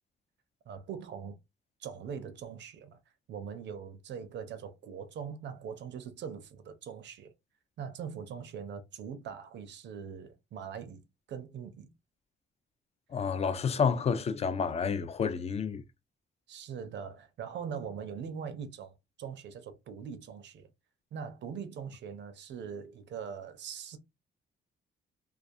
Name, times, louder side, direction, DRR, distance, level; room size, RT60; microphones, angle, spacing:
voice 1, 0.7-1.4 1.8-3.0 3.3-7.3 7.8-11.0 11.3-11.9 16.5-20.7 21.1-24.0, right 7 dB, 65° right, 0.5 m, -42 dB
voice 2, 13.1-15.8, left 6 dB, 35° left, 0.4 m, -29 dB
2.3 x 2.3 x 2.6 m
cardioid pair, 90°, 20 cm